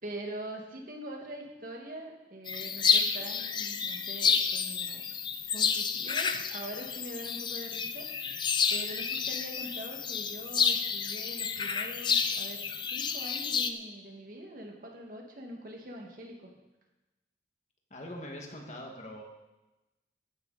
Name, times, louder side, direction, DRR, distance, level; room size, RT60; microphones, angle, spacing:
voice 1, 0.0-5.0 5.5-8.1 8.7-16.5, right 1 dB, 50° right, 1 dB, 2.2 m, -43 dB
sound 1, 2.5-13.7, left 6 dB, 25° left, 0.6 m, -30 dB
voice 2, 17.9-19.2, left 1 dB, 40° left, 0 dB, 2.1 m, -42 dB
14.0 x 11.5 x 4.3 m, 1.0 s
head